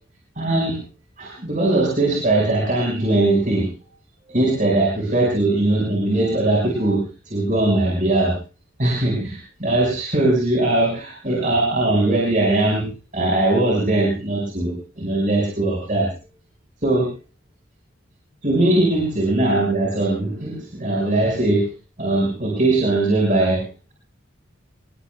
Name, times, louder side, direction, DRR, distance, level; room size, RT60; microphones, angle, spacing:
voice 1, 0.4-0.8 1.2-3.7 4.3-8.3 8.8-12.9 13.1-16.1 16.8-17.1 18.4-21.7 22.0-23.6, right 2 dB, 40° right, -2 dB, 5.5 m, -20 dB
26.5 x 21.0 x 2.3 m, 0.34 s
head